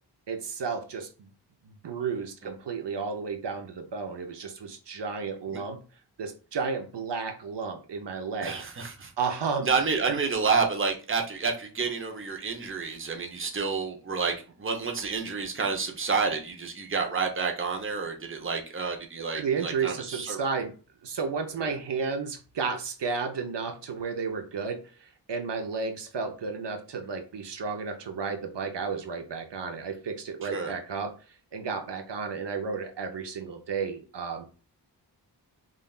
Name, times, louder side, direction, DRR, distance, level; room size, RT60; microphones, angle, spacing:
voice 1, 0.3-1.3 1.6-5.8 6.2-8.5 9.2-9.7 10.0-10.2 19.3-20.7 21.0-31.1 31.5-34.4, right 5 dB, 70° right, 5 dB, 0.7 m, -32 dB
voice 2, 8.4-9.1 9.6-20.4 21.6-21.8 30.4-30.7, right 5 dB, 30° right, 3 dB, 0.8 m, -29 dB
5.5 x 2.5 x 2.3 m, 0.35 s
wide cardioid pair, 90°, 43 cm